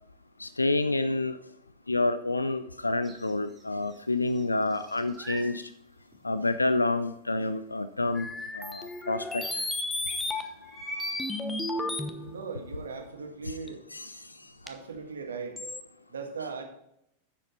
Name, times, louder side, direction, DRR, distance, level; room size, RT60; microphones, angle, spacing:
voice 1, 0.4-1.3 1.9-5.7 6.2-8.3 8.6-9.6 13.9-14.1, left 2 dB, 80° left, 12 dB, 0.4 m, -28 dB
sound 1, 3.0-4.0 4.3-5.6 6.1-6.2 8.4-8.5 8.7-8.8 9.4-9.5 10.1-11.3, right 1 dB, 15° right, 2.6 m, -41 dB
sound 2, 8.1-10.7 11.0-12.5 13.7-13.8 14.7-14.8 15.6-15.8, left 2 dB, 10° left, 1.0 m, -33 dB
voice 2, 12.3-13.8 14.6-15.7 16.1-16.6, right 5 dB, 70° right, 5 dB, 1.7 m, -38 dB
10.0 x 7.7 x 4.1 m, 0.76 s
figure-of-eight pair, 90°, 0 cm